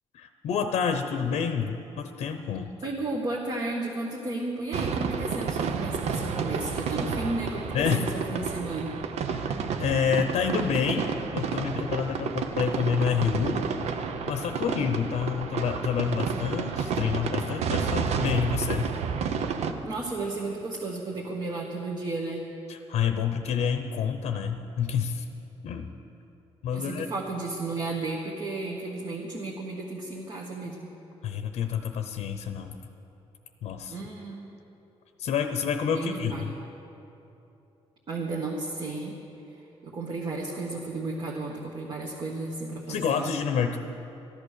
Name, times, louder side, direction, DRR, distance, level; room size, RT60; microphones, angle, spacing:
voice 1, 0.1-2.7 7.7-8.1 9.8-13.7 14.3-18.9 22.7-25.2 25.6-25.9 26.6-27.1 31.2-32.8 33.6-34.0 35.2-36.5 42.9-43.8, left 7 dB, 85° left, 7 dB, 0.8 m, -28 dB
voice 2, 2.8-8.9 19.8-22.4 26.7-30.8 33.9-34.5 35.9-36.5 38.1-39.1 39.8-43.2, right 2 dB, 45° right, -2 dB, 1.5 m, -33 dB
sound 1, 4.7-19.7, right 6 dB, 80° right, 0.8 m, -30 dB
13.5 x 11.0 x 6.6 m, 2.9 s
cardioid pair, 130°, 11 cm